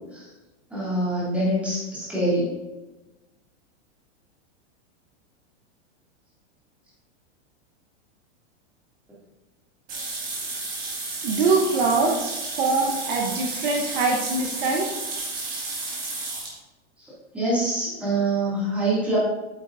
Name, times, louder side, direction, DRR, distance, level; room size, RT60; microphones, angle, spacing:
voice 1, 0.7-2.5 17.3-19.2, right 1 dB, 5° right, -9 dB, 2.4 m, -24 dB
sound 1, 9.9-16.6, right 3 dB, 25° right, 1.8 m, -32 dB
voice 2, 11.2-14.9, right 3 dB, 45° right, 0 dB, 1.0 m, -23 dB
8.4 x 8.1 x 2.6 m, 1.1 s
supercardioid pair, 175°, 36 cm